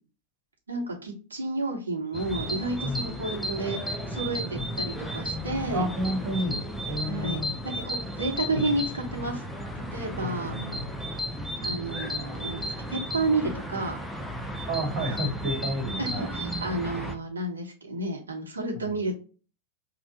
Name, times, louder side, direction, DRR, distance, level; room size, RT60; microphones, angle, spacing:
voice 1, 0.7-5.9 7.1-9.4 9.9-10.5 11.6-14.0 16.0-19.2, right 2 dB, 75° right, 1 dB, 1.1 m, -31 dB
sound 1, 2.1-17.2, equal, 5° left, 0.6 m, -34 dB
voice 2, 5.7-7.5 10.2-10.9 14.7-16.3 18.7-18.9, equal, 35° right, 1 dB, 1.7 m, -31 dB
5.4 x 2.4 x 2.8 m, 0.34 s
figure-of-eight pair, 90°, 0 cm